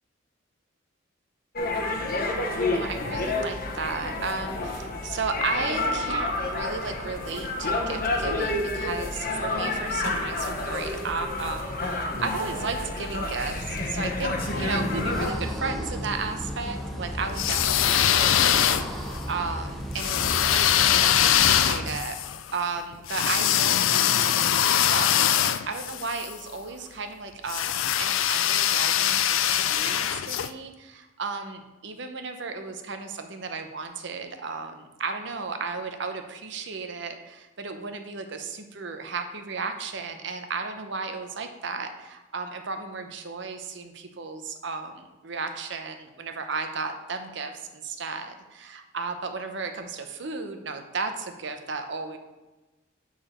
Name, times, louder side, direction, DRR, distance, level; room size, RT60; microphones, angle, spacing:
sound 1, 1.5-15.3, left 2 dB, 45° left, 1.0 m, -29 dB
voice 1, 2.3-22.2 22.5-52.2, right 4 dB, 65° right, 6 dB, 0.8 m, -34 dB
sound 2, 14.4-21.9, equal, ahead, 0.8 m, -34 dB
sound 3, 17.3-19.2 20.0-26.3 27.5-30.5, left 10 dB, 80° left, 0.4 m, -23 dB
8.3 x 4.7 x 4.4 m, 1.1 s
head